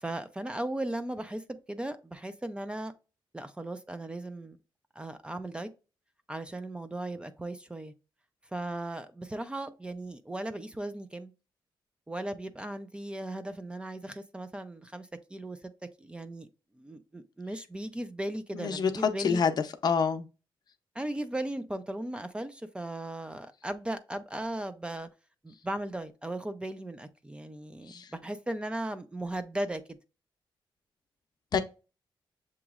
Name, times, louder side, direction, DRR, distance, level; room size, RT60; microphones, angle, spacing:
voice 1, 0.0-2.9 3.3-4.6 5.0-5.7 6.3-7.9 8.4-11.3 12.1-16.5 16.7-19.4 20.9-25.1 25.4-30.0, right 1 dB, 10° right, 0.4 m, -37 dB
voice 2, 18.5-19.5 19.8-20.3 27.9-28.1 31.5-31.6, left 6 dB, 50° left, 0.6 m, -27 dB
7.0 x 2.9 x 2.4 m
wide cardioid pair, 125°, 9 cm